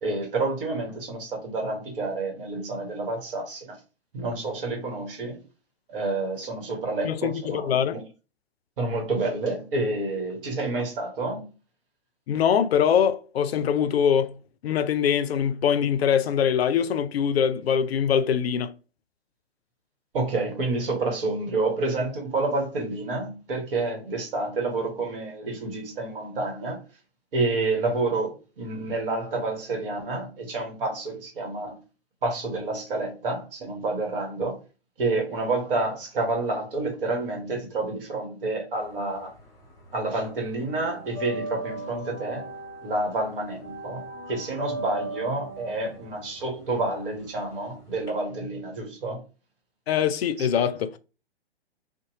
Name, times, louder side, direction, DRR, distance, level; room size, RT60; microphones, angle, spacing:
voice 1, 0.0-3.8 4.1-5.4 5.9-8.0 8.8-11.5 20.1-26.8 27.3-31.8 32.2-34.6 35.0-39.3 39.9-42.5 42.8-49.2 50.4-50.5, right 2 dB, 55° right, 1.1 m, -29 dB
voice 2, 7.0-8.0 12.3-14.4 14.6-18.7 49.9-51.0, left 8 dB, 65° left, 0.5 m, -23 dB
sound 1, 38.8-39.9 40.2-48.1, right 2 dB, 10° left, 0.8 m, -38 dB
2.7 x 2.1 x 2.9 m
figure-of-eight pair, 125°, 33 cm